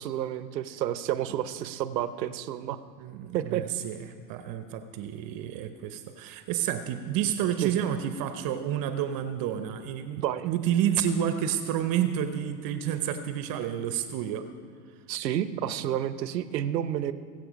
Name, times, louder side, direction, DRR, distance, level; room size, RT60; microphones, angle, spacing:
voice 1, 0.0-2.8 3.3-3.6 7.6-7.8 10.1-10.5 15.1-17.1, right 11 dB, 85° right, 13 dB, 0.9 m, -30 dB
voice 2, 3.0-14.5, right 9 dB, 45° right, 9 dB, 0.9 m, -30 dB
22.0 x 7.8 x 5.1 m, 2.2 s
hypercardioid pair, 100°, 49 cm